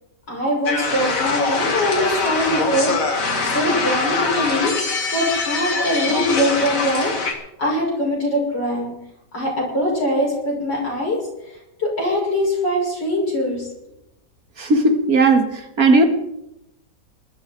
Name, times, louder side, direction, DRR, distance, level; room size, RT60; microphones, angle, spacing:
voice 1, 0.3-4.7 5.1-8.9 9.3-11.2 11.8-13.7, equal, 85° left, -3 dB, 6.9 m, -22 dB
sound 1, 0.7-7.3, left 3 dB, 50° left, 2.3 m, -23 dB
voice 2, 14.6-15.5 15.8-16.0, right 2 dB, 55° right, 5 dB, 2.0 m, -15 dB
20.5 x 12.0 x 4.4 m, 0.85 s
omnidirectional pair, 1.8 m